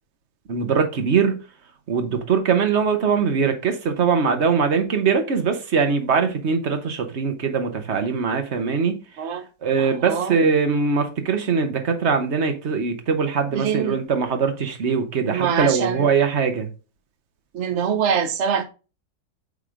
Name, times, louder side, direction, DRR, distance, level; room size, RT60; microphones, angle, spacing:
voice 1, 0.5-1.4 1.9-9.0 9.6-16.7, right 5 dB, 40° right, 1.1 m, -22 dB
voice 2, 9.8-10.4 13.5-14.0 15.3-16.1 17.5-18.6, right 7 dB, 80° right, 0.6 m, -24 dB
8.9 x 3.7 x 3.7 m
omnidirectional pair, 2.1 m